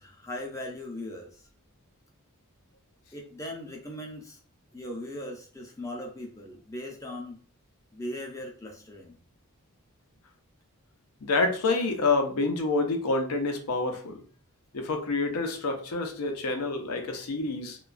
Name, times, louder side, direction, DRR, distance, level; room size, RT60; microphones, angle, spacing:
voice 1, 0.0-1.5 3.1-4.4 4.7-7.4 7.9-9.2, left 1 dB, 15° left, 0.5 m, -39 dB
voice 2, 11.2-14.2 14.7-17.8, left 3 dB, 85° left, 0.6 m, -27 dB
3.0 x 2.2 x 2.4 m
head